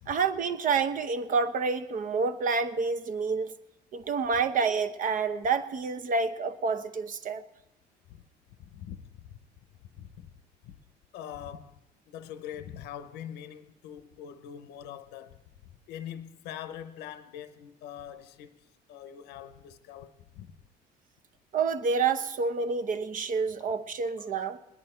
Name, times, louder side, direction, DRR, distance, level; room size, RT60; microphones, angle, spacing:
voice 1, 0.1-3.5 3.9-7.4 21.5-24.6, right 5 dB, 50° right, 0.9 m, -28 dB
voice 2, 8.6-9.4 9.8-10.4 10.6-10.8 11.1-11.8 12.1-15.4 15.9-20.5 23.6-23.7 24.2-24.3, left 10 dB, 85° left, 0.7 m, -43 dB
20.5 x 10.0 x 4.4 m
cardioid pair, 110°, 17 cm